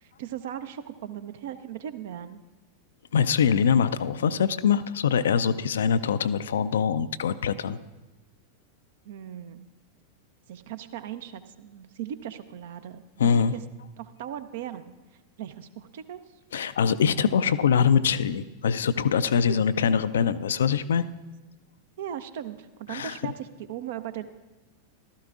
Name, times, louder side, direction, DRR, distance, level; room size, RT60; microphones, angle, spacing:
voice 1, 0.0-2.4 9.0-9.7 10.5-13.6 14.0-14.9 15.4-16.2 19.3-19.6 22.0-24.3, right 10 dB, 55° right, 12 dB, 0.5 m, -38 dB
voice 2, 3.1-7.8 13.2-13.5 16.5-21.1 22.9-23.2, left 7 dB, 65° left, 14 dB, 0.4 m, -23 dB
15.0 x 13.0 x 2.5 m, 1.1 s
figure-of-eight pair, 90°, 0 cm